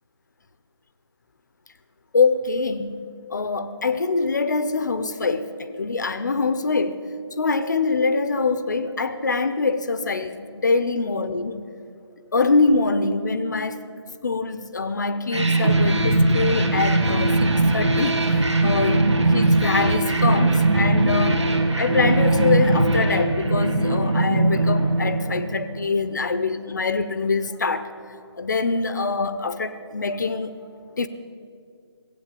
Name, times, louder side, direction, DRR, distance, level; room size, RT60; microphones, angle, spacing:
voice 1, 2.1-3.0 3.3-5.5 5.8-7.0 7.4-11.7 12.3-13.8 14.2-21.5 21.8-27.9 28.4-30.5 31.0-31.1, left 4 dB, 40° left, 0.8 m, -24 dB
sound 1, 15.3-25.9, right 2 dB, 85° right, 2.2 m, -20 dB
sound 2, 17.0-27.0, left 6 dB, ahead, 0.5 m, -40 dB
17.0 x 8.5 x 8.4 m
figure-of-eight pair, 170°, 15 cm